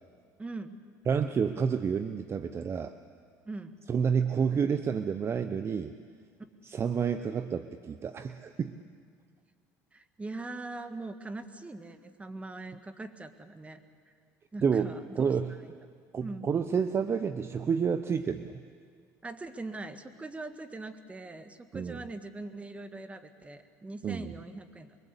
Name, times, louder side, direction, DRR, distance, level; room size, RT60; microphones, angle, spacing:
voice 1, 0.4-0.8 3.4-3.8 9.9-13.8 14.5-15.3 16.2-16.5 19.2-25.0, right 2 dB, 15° right, 10 dB, 1.7 m, -41 dB
voice 2, 1.1-2.9 3.9-5.9 6.6-8.7 14.6-15.5 16.1-18.6 21.7-22.0 24.0-24.3, right 6 dB, 35° right, 12 dB, 0.8 m, -29 dB
24.5 x 23.0 x 8.3 m, 2.1 s
supercardioid pair, 100°, 7 cm